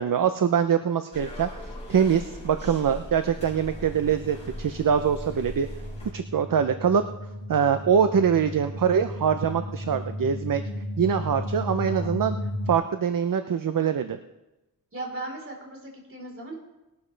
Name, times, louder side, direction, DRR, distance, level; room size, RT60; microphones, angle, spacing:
voice 1, 0.0-1.5 1.9-5.7 6.1-7.0 7.5-10.6 11.0-12.4 12.7-14.2, right 7 dB, 65° right, 9 dB, 0.7 m, -23 dB
sound 1, 1.1-6.1, left 1 dB, 20° left, 5.5 m, -40 dB
sound 2, 3.3-12.7, left 1 dB, 85° left, 2.3 m, -35 dB
voice 2, 11.7-12.1 14.9-16.5, right 2 dB, 35° right, 0 dB, 4.0 m, -37 dB
20.0 x 12.5 x 3.3 m, 1.0 s
wide cardioid pair, 75°, 36 cm